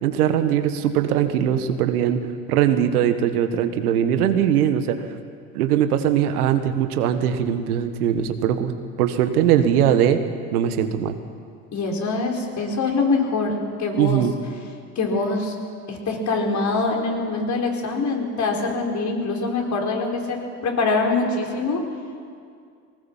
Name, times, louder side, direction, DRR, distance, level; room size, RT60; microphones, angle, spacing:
voice 1, 0.0-2.2 2.5-5.0 5.5-8.7 9.0-10.2 10.5-11.2 14.0-14.3, right 9 dB, 80° right, 8 dB, 1.7 m, -20 dB
voice 2, 11.7-14.2 14.9-15.6 15.9-20.4 20.6-21.8, left 3 dB, 40° left, 1 dB, 4.7 m, -24 dB
20.0 x 18.5 x 7.4 m, 2.2 s
hypercardioid pair, 85°, 44 cm